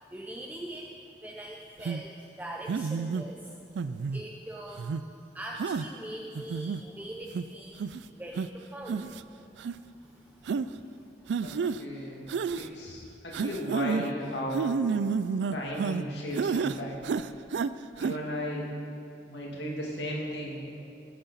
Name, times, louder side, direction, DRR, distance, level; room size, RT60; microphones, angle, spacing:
voice 1, 0.1-0.9 1.2-3.5 4.1-9.1 9.7-10.9, right 1 dB, 10° right, -2 dB, 0.6 m, -43 dB
sound 1, 1.8-2.0 2.7-3.2 3.8-4.2 4.8-5.0 5.6-5.9 6.3-6.8 7.3-7.4 7.8-8.0 8.4-8.5 8.9-9.2 9.6-9.7 10.5-10.7 11.3-11.8 12.3-12.7 13.3-14.1 14.5-16.0 16.3-16.8 17.0-17.7 18.0-18.1, right 5 dB, 85° right, 0.3 m, -30 dB
voice 2, 11.4-12.3 12.6-14.7 15.5-16.9 18.0-18.7 19.3-20.6, equal, 85° left, -2 dB, 2.3 m, -35 dB
18.5 x 7.7 x 4.1 m, 2.7 s
head